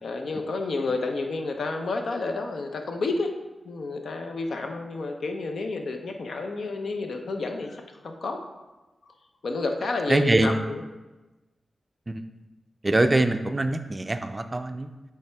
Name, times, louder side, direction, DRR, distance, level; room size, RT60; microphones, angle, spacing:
voice 1, 0.0-3.3 3.6-8.5 9.1-9.2 9.4-10.8, left 3 dB, 75° left, 4 dB, 0.7 m, -30 dB
voice 2, 10.1-10.6 12.1-12.2 12.8-14.9, right 2 dB, 30° right, 8 dB, 0.3 m, -23 dB
8.3 x 3.4 x 3.4 m, 1.1 s
wide cardioid pair, 85°, 0 cm